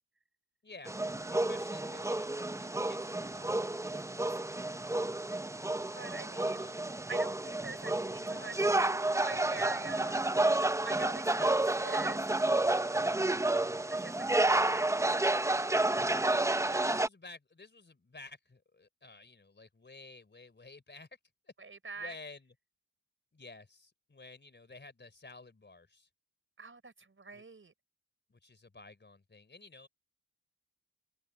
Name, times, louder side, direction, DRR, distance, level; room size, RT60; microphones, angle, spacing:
voice 1, 0.6-0.9 1.3-3.6 6.5-6.9 16.3-21.1 21.5-21.6 22.0-22.5 23.3-26.1 27.3-27.4 28.3-29.9, left 3 dB, 30° left, 4.1 m, -52 dB
sound 1, 0.9-17.1, right 2 dB, 10° right, 0.6 m, -30 dB
voice 2, 5.9-6.7 7.1-10.3 10.8-12.5 13.9-15.1 21.6-22.2 26.6-27.7, right 4 dB, 35° right, 4.9 m, -45 dB
open air
cardioid pair, 85°, 34 cm